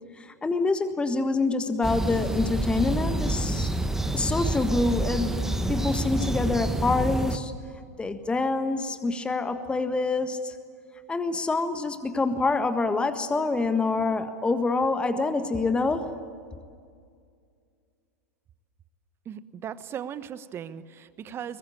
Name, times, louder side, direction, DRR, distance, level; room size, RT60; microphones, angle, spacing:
voice 1, 0.2-3.7 4.1-7.5 8.0-10.5 11.1-16.1, left 3 dB, 10° left, 9 dB, 1.5 m, -26 dB
sound 1, 1.8-7.4, right 1 dB, 5° right, 1.3 m, -28 dB
voice 2, 19.2-21.6, right 9 dB, 30° right, 14 dB, 1.2 m, -37 dB
23.0 x 20.5 x 8.9 m, 2.2 s
hypercardioid pair, 95°, 8 cm